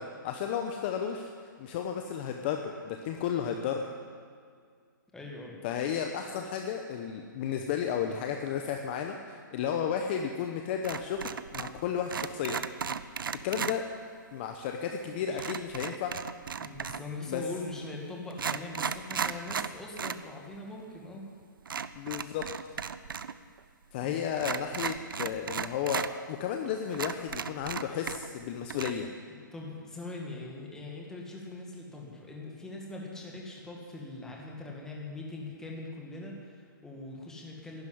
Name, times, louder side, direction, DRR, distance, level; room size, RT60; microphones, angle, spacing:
voice 1, 0.0-1.3 1.6-3.8 5.6-12.6 13.4-13.9 14.3-16.2 17.3-17.4 21.9-22.5 23.9-29.1, left 8 dB, 30° left, 4 dB, 0.8 m, -33 dB
voice 2, 5.1-5.6 15.3-15.4 16.6-21.3 24.0-24.2 29.3-37.9, left 2 dB, 5° left, -2 dB, 1.9 m, -42 dB
sound 1, 10.8-11.8 12.1-13.8 15.4-17.1 17.8-17.9 18.3-20.2 20.5-20.6 21.7-23.3 23.6-23.7 24.4-26.1 26.6-26.7 26.9-28.4 28.7-28.9, right 6 dB, 90° right, 0.7 m, -35 dB
12.0 x 10.5 x 10.0 m, 2.1 s
hypercardioid pair, 160°, 11 cm